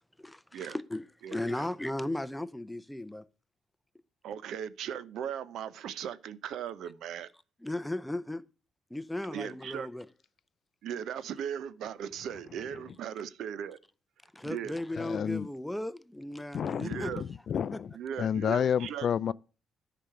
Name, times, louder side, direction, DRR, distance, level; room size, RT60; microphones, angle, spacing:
voice 1, 0.2-3.2 7.6-8.4 8.9-10.1 14.3-17.1 17.7-17.8, left 1 dB, 5° left, 0.6 m, -36 dB
voice 2, 1.2-1.7 4.2-7.3 9.3-9.9 10.8-13.8 14.4-14.8 16.8-17.2 17.9-19.3, right 9 dB, 75° right, 0.7 m, -38 dB
voice 3, 15.0-15.5 16.5-17.9 18.2-19.3, left 8 dB, 55° left, 0.3 m, -30 dB
10.0 x 5.1 x 5.8 m
cardioid pair, 90°, 0 cm